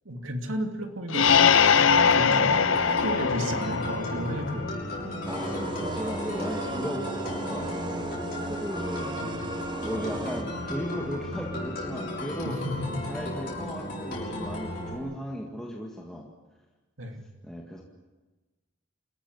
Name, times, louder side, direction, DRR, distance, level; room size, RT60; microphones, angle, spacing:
voice 1, 0.0-4.8 12.5-13.0 17.0-17.2, equal, 80° right, 4 dB, 2.7 m, -33 dB
sound 1, 1.1-4.7, left 6 dB, 75° left, 0.7 m, -22 dB
sound 2, 1.3-15.0, left 1 dB, 45° left, 6.5 m, -35 dB
voice 2, 2.3-3.0 5.3-7.7 8.4-9.2 9.8-12.6 13.1-16.3 17.4-17.8, equal, 5° left, -2 dB, 1.9 m, -36 dB
sound 3, 5.3-10.4, right 2 dB, 20° right, 1.0 m, -36 dB
27.5 x 14.5 x 9.6 m, 1.2 s
head